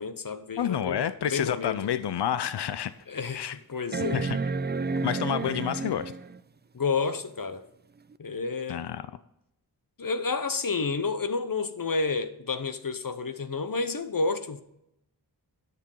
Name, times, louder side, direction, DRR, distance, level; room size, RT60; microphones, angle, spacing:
voice 1, 0.0-1.0 1.3-1.8 3.1-4.3 6.7-7.6 8.2-8.8 10.0-14.6, left 4 dB, 55° left, 10 dB, 0.9 m, -30 dB
voice 2, 0.6-2.9 3.3-3.6 4.1-4.4 5.0-6.1 8.7-9.0, left 9 dB, 70° left, 13 dB, 0.6 m, -29 dB
sound 1, 1.8-1.9 2.5-2.6 3.9-6.4 8.1-8.2, right 4 dB, 25° right, 0.4 m, -31 dB
10.5 x 6.8 x 5.5 m, 0.79 s
wide cardioid pair, 55°, 41 cm